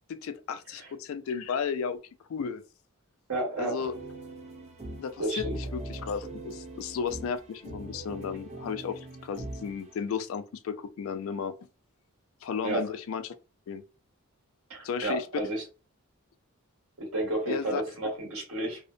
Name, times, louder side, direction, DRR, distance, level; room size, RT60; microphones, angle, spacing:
voice 1, 0.1-2.0 2.3-2.6 3.6-3.9 5.0-11.5 12.4-13.3 13.7-13.8 14.8-15.3 17.5-17.8, left 6 dB, 65° left, 0.3 m, -34 dB
voice 2, 3.3-3.9 5.2-5.6 12.6-12.8 14.7-15.6 17.0-18.9, right 2 dB, 75° right, 1.4 m, -31 dB
sound 1, 3.8-10.0, right 2 dB, 30° right, 0.5 m, -41 dB
2.7 x 2.0 x 2.4 m
head